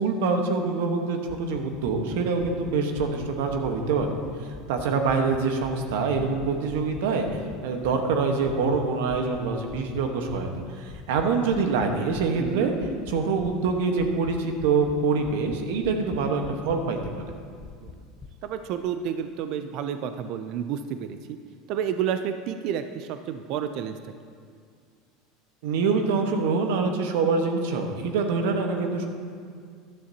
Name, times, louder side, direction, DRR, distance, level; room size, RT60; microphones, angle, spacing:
voice 1, 0.0-10.5 10.8-12.7 13.1-17.2 25.6-29.1, right 4 dB, 80° right, 4 dB, 1.3 m, -25 dB
sound 1, 1.3-5.4 5.6-8.8 9.0-9.4 9.7-10.0 10.3-10.6 10.9-11.3 11.5-11.9 12.1-12.5 12.8-13.1 13.4-13.7 14.0-14.3 14.6-14.9 15.2-16.2 16.4-16.7 17.0-17.3 17.6-18.3, left 5 dB, 25° left, 0.8 m, -43 dB
voice 2, 12.4-12.7 17.8-17.9 18.4-21.4 21.7-24.1, right 8 dB, 60° right, 8 dB, 0.5 m, -30 dB
13.0 x 11.5 x 2.9 m, 2.1 s
supercardioid pair, 100°, 0 cm